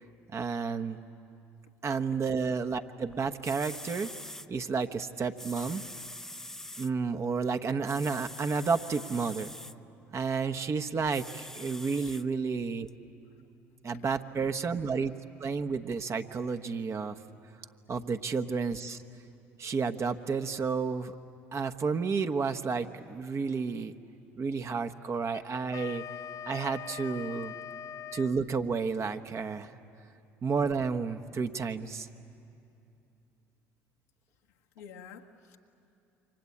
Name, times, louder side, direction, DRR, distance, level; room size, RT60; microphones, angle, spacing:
voice 1, 0.3-1.0 1.8-4.1 4.5-5.8 6.8-9.5 10.1-12.9 13.8-15.1 15.4-17.2 17.9-19.0 19.6-21.1 21.5-23.9 24.4-26.0 26.5-27.5 28.1-29.8 30.4-32.1, right 5 dB, 40° right, 8 dB, 1.2 m, -31 dB
sound 1, 3.1-3.2 3.4-4.5 5.4-6.9 7.8-9.7 11.1-12.2 12.9-13.0, left 1 dB, 5° left, 0.7 m, -44 dB
voice 2, 13.9-14.3 34.5-35.6, left 7 dB, 85° left, 2 dB, 1.5 m, -51 dB
Wind instrument woodwind instrument, 25.3-28.4, left 9 dB, 50° left, 0.7 m, -42 dB
28.5 x 24.5 x 8.5 m, 2.7 s
hypercardioid pair, 65°, 7 cm